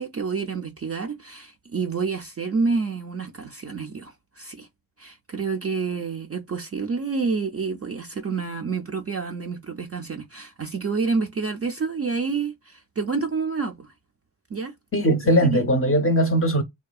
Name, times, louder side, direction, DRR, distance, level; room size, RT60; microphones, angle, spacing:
voice 1, 0.0-4.7 5.0-13.9 14.5-14.7 15.4-15.6, right 4 dB, 30° right, 0.4 m, -28 dB
voice 2, 14.9-16.6, equal, 30° left, 0.6 m, -20 dB
2.6 x 2.2 x 2.3 m
cardioid pair, 45°, 49 cm